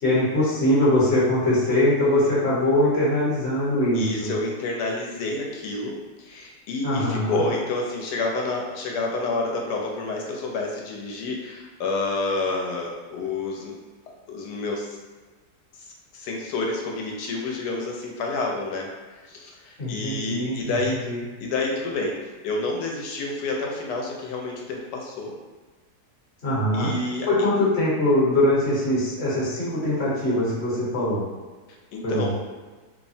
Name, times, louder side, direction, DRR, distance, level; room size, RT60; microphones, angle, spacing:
voice 1, 0.0-4.3 6.8-7.4 19.8-21.2 26.4-26.9 27.2-31.2 32.0-32.3, left 1 dB, 45° left, -8 dB, 1.1 m, -22 dB
voice 2, 3.9-13.8 14.3-15.0 16.1-18.9 19.3-21.0 21.4-25.3 26.7-27.3 31.9-32.3, left 3 dB, 90° left, 0 dB, 1.2 m, -29 dB
3.2 x 2.0 x 2.6 m, 1.3 s
omnidirectional pair, 1.7 m